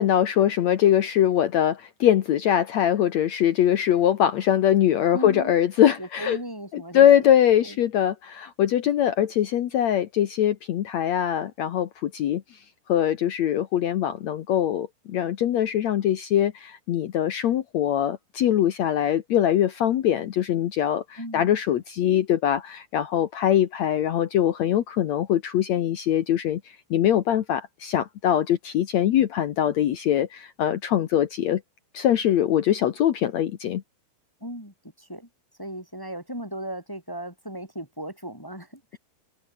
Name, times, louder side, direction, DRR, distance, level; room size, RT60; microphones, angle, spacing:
voice 1, 0.0-6.4 6.7-12.4 12.9-26.6 26.9-31.6 31.9-33.8, left 10 dB, 90° left, 1.5 m, -22 dB
voice 2, 5.1-5.5 5.8-7.4 7.6-7.8 21.2-21.5 22.0-22.2 34.4-35.3 35.6-39.0, right 1 dB, 5° left, 4.6 m, -37 dB
omnidirectional pair, 5.0 m